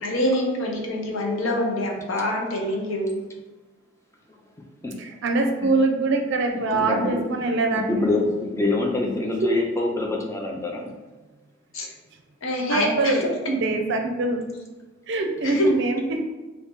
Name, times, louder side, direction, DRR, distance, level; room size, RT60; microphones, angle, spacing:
voice 1, 0.0-3.2 11.7-11.9 12.4-13.3 15.4-15.7, left 1 dB, 80° left, 0 dB, 0.7 m, -25 dB
voice 2, 5.0-8.2 9.4-9.5 12.7-14.4 15.1-16.2, right 3 dB, 60° right, 3 dB, 0.5 m, -24 dB
voice 3, 6.5-7.2 7.7-11.0, left 2 dB, 15° left, 0 dB, 0.5 m, -26 dB
2.8 x 2.7 x 3.5 m, 1.3 s
head